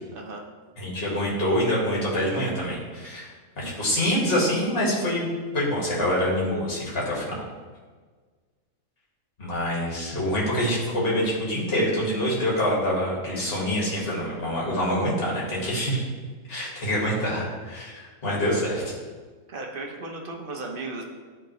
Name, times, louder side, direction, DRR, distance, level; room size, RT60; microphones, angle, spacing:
voice 1, 0.1-0.5 19.5-21.0, right 3 dB, 45° right, 1 dB, 0.9 m, -35 dB
voice 2, 0.8-3.3 3.6-7.4 9.4-16.0 16.5-18.9, equal, 40° left, -5 dB, 1.9 m, -26 dB
10.5 x 3.6 x 3.1 m, 1.5 s
omnidirectional pair, 1.5 m